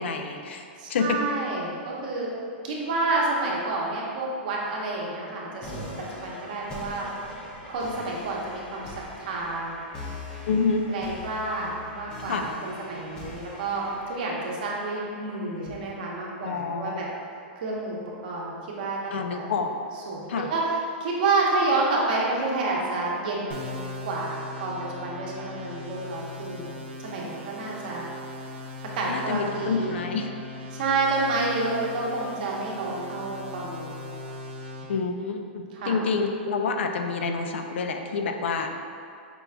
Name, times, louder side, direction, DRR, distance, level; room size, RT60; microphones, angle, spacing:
voice 1, 0.0-1.2 10.5-10.9 12.3-12.5 16.4-17.1 19.1-19.7 20.3-20.5 29.1-30.3 34.9-38.7, left 4 dB, 80° left, 5 dB, 0.4 m, -28 dB
voice 2, 0.8-2.4 2.6-5.8 6.2-7.1 7.7-9.8 10.9-17.1 17.6-18.0 18.2-19.5 20.1-23.8 24.0-26.8 27.0-28.0 28.9-30.1 30.7-34.1 35.7-36.0, right 3 dB, 50° right, -3 dB, 0.8 m, -29 dB
sound 1, 5.6-16.6, left 2 dB, 15° left, 0.5 m, -42 dB
sound 2, 23.5-34.8, left 1 dB, 85° right, 0.7 m, -39 dB
5.2 x 2.3 x 3.5 m, 2.3 s
supercardioid pair, 170°, 6 cm